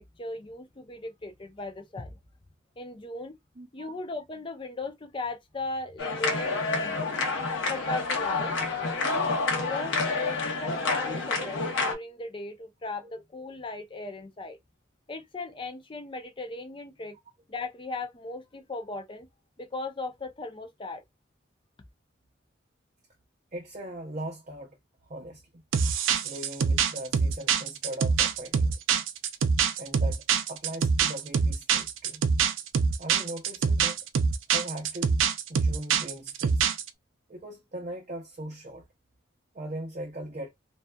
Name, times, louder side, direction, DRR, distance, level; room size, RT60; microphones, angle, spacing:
voice 1, 0.0-2.2 2.8-3.4 3.7-7.1 7.7-8.5 9.0-9.3 9.7-14.6 15.1-17.2 17.5-19.3 19.6-21.0, left 2 dB, 25° left, 0.4 m, -37 dB
voice 2, 3.6-3.9 13.0-13.1 23.5-24.8 25.1-25.4 26.2-28.8 29.8-32.2 33.0-34.0 34.5-35.2 35.5-36.7 37.3-38.8 39.5-40.5, right 1 dB, 40° right, 0.6 m, -39 dB
sound 1, 6.0-11.9, left 3 dB, 85° left, 0.8 m, -28 dB
sound 2, 25.7-36.9, right 6 dB, 90° right, 0.4 m, -25 dB
2.7 x 2.3 x 2.2 m
head